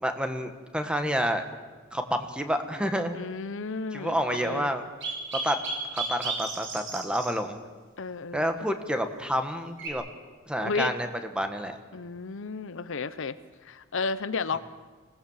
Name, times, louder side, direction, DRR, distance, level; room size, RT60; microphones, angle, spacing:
voice 1, 0.0-1.4 1.9-3.2 3.9-4.8 5.4-5.6 5.9-7.5 8.3-10.0 10.4-11.1 11.3-11.8 14.5-14.6, equal, 5° right, 7 dB, 1.5 m, -29 dB
voice 2, 3.1-4.7 8.0-8.4 10.6-10.9 11.9-13.3 13.7-14.6, left 4 dB, 65° left, 14 dB, 0.8 m, -32 dB
sound 1, 4.3-4.4 5.0-7.3 9.8-9.9, right 3 dB, 60° right, 5.0 m, -33 dB
25.5 x 18.0 x 7.4 m, 1.4 s
head